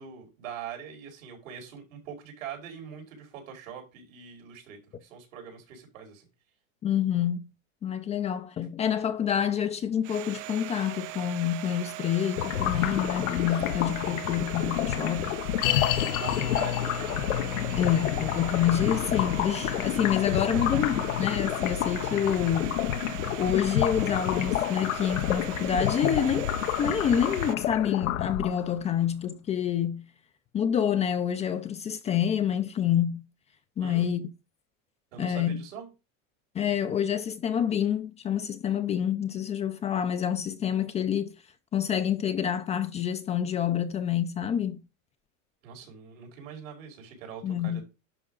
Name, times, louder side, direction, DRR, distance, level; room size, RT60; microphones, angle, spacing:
voice 1, 0.0-6.3 16.2-17.3 20.4-21.0 33.8-34.1 35.1-35.9 39.9-40.0 45.6-47.8, right 7 dB, 85° right, 5.0 m, -43 dB
voice 2, 6.8-7.5 7.8-15.4 17.8-20.9 21.2-22.8 23.4-26.5 26.8-30.0 30.5-33.2 33.8-34.3 35.2-35.6 36.5-41.3 41.7-44.8 47.4-47.8, left 9 dB, 15° left, 0.5 m, -27 dB
Domestic sounds home sounds, 10.0-27.6, right 18 dB, 65° right, 0.6 m, -40 dB
sound 1, 12.4-28.8, left 12 dB, 85° left, 0.9 m, -30 dB
sound 2, 15.6-26.9 27.2-27.3 27.9-28.0, left 11 dB, 60° left, 1.3 m, -35 dB
11.0 x 4.9 x 3.9 m
supercardioid pair, 145°, 39 cm